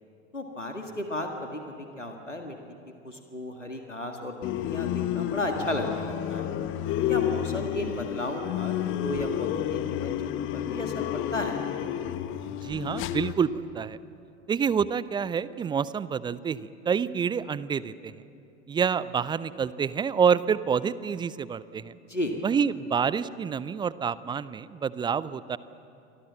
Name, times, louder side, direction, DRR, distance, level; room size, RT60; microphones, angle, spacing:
voice 1, 0.3-2.6 3.0-4.3 4.6-6.5 7.1-10.1 10.5-11.6 22.1-22.3, left 1 dB, 90° left, 3 dB, 1.8 m, -34 dB
sound 1, 4.4-13.3, left 11 dB, 35° left, 1.2 m, -30 dB
voice 2, 12.5-14.0 14.5-18.1 18.7-21.9 22.4-25.6, right 7 dB, 15° right, 18 dB, 0.5 m, -27 dB
28.5 x 24.0 x 7.4 m, 2.6 s
figure-of-eight pair, 85°, 36 cm